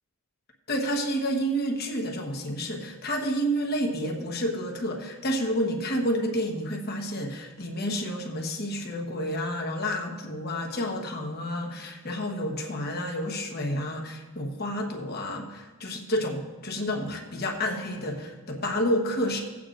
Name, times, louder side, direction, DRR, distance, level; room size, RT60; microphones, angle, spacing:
voice 1, 0.7-19.4, equal, 45° left, 1 dB, 1.1 m, -30 dB
17.0 x 8.4 x 2.5 m, 1.2 s
head